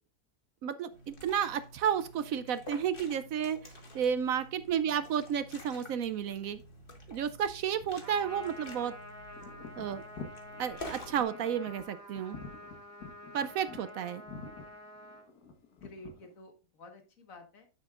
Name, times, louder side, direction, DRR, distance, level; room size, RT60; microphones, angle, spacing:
voice 1, 0.6-6.6 7.1-9.0 9.8-10.0 10.6-12.4 13.3-14.2, right 8 dB, 70° right, 13 dB, 0.9 m, -32 dB
Liquid, 0.9-11.2, equal, 35° left, 1.6 m, -49 dB
Trumpet, 8.0-15.2, left 1 dB, 10° right, 2.2 m, -48 dB
sound 1, 9.3-16.4, left 4 dB, 85° left, 1.9 m, -48 dB
voice 2, 15.7-17.7, left 2 dB, 60° left, 4 dB, 2.0 m, -51 dB
9.7 x 7.5 x 2.5 m, 0.33 s
omnidirectional pair, 1.6 m